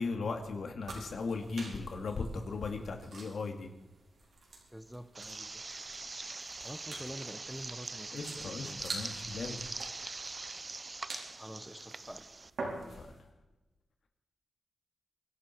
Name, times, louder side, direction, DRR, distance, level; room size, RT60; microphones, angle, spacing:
voice 1, 0.0-3.7 8.1-9.6 12.8-13.1, left 4 dB, 75° left, 4 dB, 2.4 m, -37 dB
sound 1, 0.8-13.2, right 3 dB, 75° right, 4.5 m, -47 dB
voice 2, 4.7-5.6 6.6-8.8 11.4-12.2, equal, 5° right, 11 dB, 0.9 m, -47 dB
sound 2, 5.1-12.5, right 3 dB, 35° right, 0.6 m, -43 dB
24.5 x 11.5 x 4.6 m, 1.1 s
cardioid pair, 85°, 0 cm